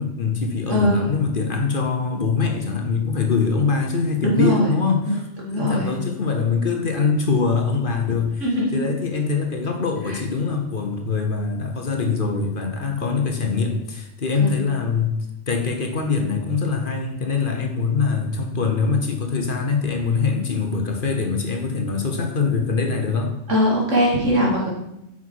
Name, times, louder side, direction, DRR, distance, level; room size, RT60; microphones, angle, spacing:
voice 1, 0.0-5.2 5.5-15.2 15.5-23.4, left 4 dB, 45° left, 4 dB, 1.1 m, -23 dB
voice 2, 0.7-1.1 4.2-4.7 5.4-5.9 8.4-8.9 10.1-10.2 14.4-14.6 23.5-24.7, equal, 75° right, -3 dB, 2.5 m, -21 dB
8.1 x 5.9 x 4.7 m, 0.85 s
omnidirectional pair, 1.3 m